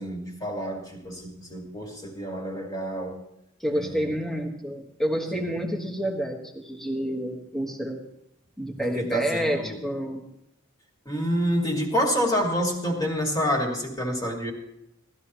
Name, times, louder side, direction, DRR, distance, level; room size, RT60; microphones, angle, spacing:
voice 1, 0.0-3.2 3.7-4.2 5.3-5.4 8.8-9.8 11.1-14.5, equal, 20° left, 0 dB, 2.1 m, -28 dB
voice 2, 3.6-8.0 8.6-10.2, equal, ahead, 1 dB, 1.3 m, -29 dB
17.5 x 12.5 x 3.0 m, 0.80 s
head